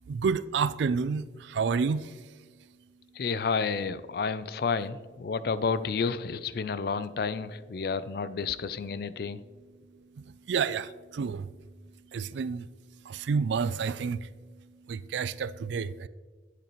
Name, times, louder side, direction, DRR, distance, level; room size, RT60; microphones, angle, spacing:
voice 1, 0.1-2.1 10.2-11.5 12.1-12.7 13.1-14.3 14.9-16.1, right 5 dB, 75° right, 0.3 m, -29 dB
voice 2, 3.2-9.4, left 5 dB, 55° left, 0.4 m, -30 dB
10.5 x 8.0 x 3.1 m
head